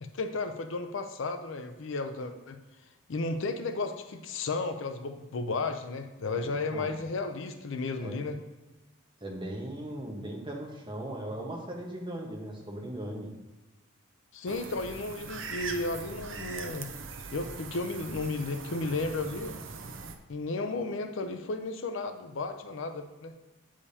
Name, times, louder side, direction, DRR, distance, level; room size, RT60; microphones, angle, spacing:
voice 1, 0.0-2.6 3.1-8.4 14.3-16.9 17.3-19.6 20.3-23.3, left 3 dB, 60° left, 7 dB, 0.5 m, -33 dB
voice 2, 9.2-13.3, right 1 dB, 25° right, -1 dB, 1.1 m, -38 dB
sound 1, 14.5-20.1, right 4 dB, 60° right, 0.6 m, -41 dB
8.4 x 5.0 x 2.8 m, 1.1 s
head